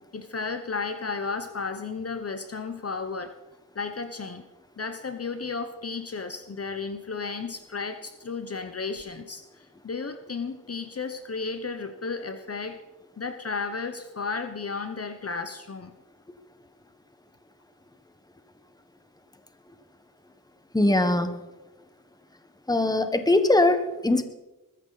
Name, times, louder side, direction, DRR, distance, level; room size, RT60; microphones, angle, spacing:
voice 1, 0.1-3.3 3.7-4.4 4.8-12.8 13.2-15.9, left 4 dB, 45° left, 9 dB, 1.0 m, -33 dB
voice 2, 20.7-21.3 22.7-24.2, left 2 dB, 10° left, 9 dB, 1.3 m, -21 dB
21.0 x 14.0 x 4.1 m, 1.1 s
wide cardioid pair, 85°, 34 cm